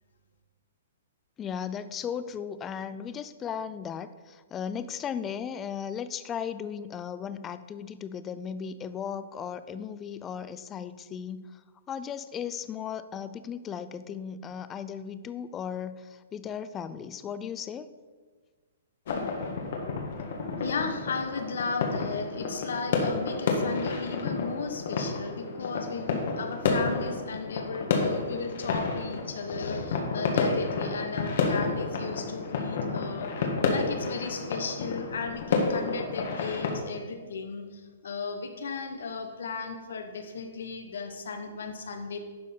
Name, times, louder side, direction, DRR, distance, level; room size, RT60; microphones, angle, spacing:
voice 1, 1.4-11.6 11.9-17.9, left 7 dB, 15° left, 13 dB, 0.4 m, -36 dB
sound 1, 19.1-36.8, left 4 dB, 60° left, 1.6 m, -30 dB
voice 2, 20.6-33.3 33.6-42.2, left 4 dB, 80° left, 6 dB, 1.3 m, -35 dB
11.0 x 4.4 x 5.4 m, 1.4 s
hypercardioid pair, 155°, 0 cm